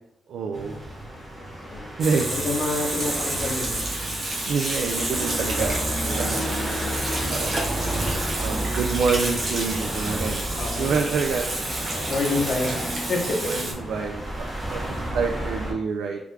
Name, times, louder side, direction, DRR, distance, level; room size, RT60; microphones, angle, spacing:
voice 1, 0.3-0.8 2.0-2.3 4.5-6.6 7.2-7.6 8.4-12.4 12.7-12.8 13.2-16.2, right 5 dB, 85° right, 3 dB, 0.3 m, -28 dB
sound 1, 0.5-15.7, right 1 dB, 10° right, 0.9 m, -31 dB
Water tap faucet / Sink (filling or washing), 2.0-13.7, right 2 dB, 35° right, 0.9 m, -30 dB
voice 2, 2.3-3.9 10.6-11.0 12.1-12.8 13.1-13.5, left 3 dB, 55° left, 0 dB, 0.9 m, -27 dB
3.5 x 3.2 x 3.3 m, 0.89 s
wide cardioid pair, 170°, 0 cm